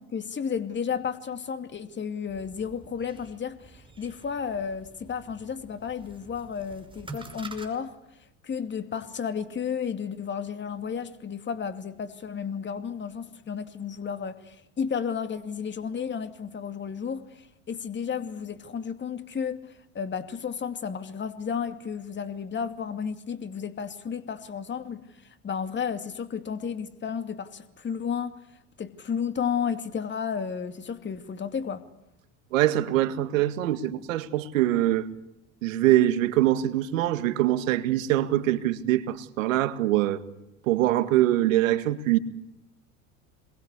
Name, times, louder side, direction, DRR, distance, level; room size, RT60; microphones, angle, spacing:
voice 1, 0.0-8.0 8.4-28.3 28.8-31.9, left 7 dB, 30° left, 2.5 m, -32 dB
sound 1, 2.3-7.7, right 3 dB, 15° right, 5.4 m, -47 dB
voice 2, 32.5-35.1 35.6-40.2 40.6-42.2, right 14 dB, 90° right, 1.9 m, -23 dB
27.5 x 22.5 x 8.3 m
supercardioid pair, 100°, 38 cm